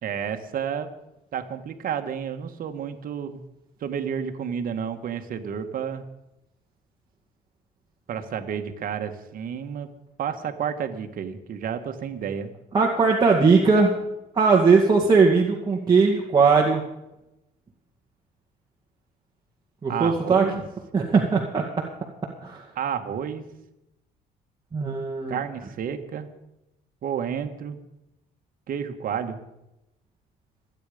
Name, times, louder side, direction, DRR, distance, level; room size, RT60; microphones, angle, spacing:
voice 1, 0.0-0.9 1.3-3.4 3.8-6.1 8.1-9.9 10.2-12.5 19.9-20.6 22.7-23.4 25.3-26.3 27.0-27.8 28.7-29.4, right 8 dB, 55° right, 7 dB, 1.8 m, -31 dB
voice 2, 12.7-14.0 14.3-16.8 19.8-20.4 20.9-21.6 22.4-22.6 24.7-25.4, right 4 dB, 25° right, -2 dB, 2.1 m, -19 dB
26.0 x 9.3 x 5.2 m, 0.89 s
cardioid pair, 110°, 17 cm